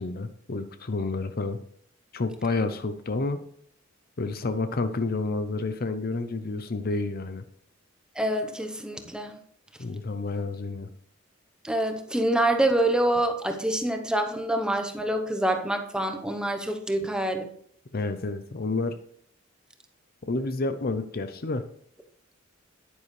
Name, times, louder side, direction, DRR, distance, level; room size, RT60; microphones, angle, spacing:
voice 1, 0.0-1.6 2.1-3.4 4.2-7.4 9.8-10.9 17.9-19.0 20.3-21.7, left 3 dB, 50° left, 10 dB, 0.7 m, -29 dB
voice 2, 8.2-9.4 11.6-17.5, right 1 dB, 5° right, 5 dB, 1.0 m, -26 dB
9.8 x 9.5 x 3.3 m, 0.63 s
head